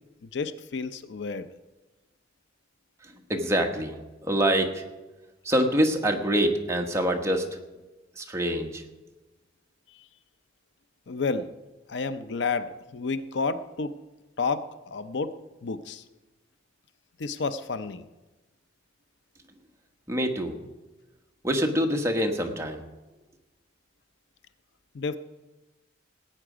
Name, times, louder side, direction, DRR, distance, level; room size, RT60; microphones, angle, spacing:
voice 1, 0.3-1.6 9.9-10.1 11.1-11.5 11.9-14.0 14.4-15.4 15.6-16.0 17.2-18.0 24.9-25.2, left 4 dB, 65° left, 12 dB, 0.6 m, -31 dB
voice 2, 3.0-4.8 5.4-7.6 8.1-8.8 20.1-20.6 21.4-22.8, equal, 15° right, 3 dB, 1.2 m, -25 dB
17.5 x 8.9 x 5.0 m, 1.1 s
head